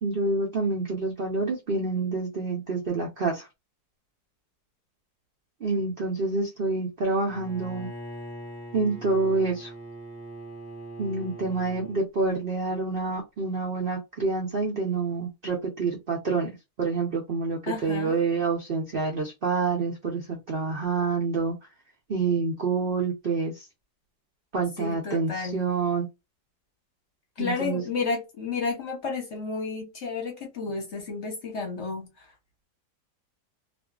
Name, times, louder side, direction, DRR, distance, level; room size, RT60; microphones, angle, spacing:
voice 1, 0.0-3.5 5.6-7.9 8.7-9.7 11.0-21.5 22.1-23.7 24.5-26.1 27.4-27.8, right 4 dB, 75° right, 0.5 m, -27 dB
Bowed string instrument, 7.3-12.1, right 1 dB, 25° left, 0.9 m, -41 dB
voice 2, 17.7-18.1 24.8-25.6 27.4-32.3, left 4 dB, 50° left, 0.9 m, -31 dB
2.4 x 2.4 x 2.3 m
omnidirectional pair, 1.8 m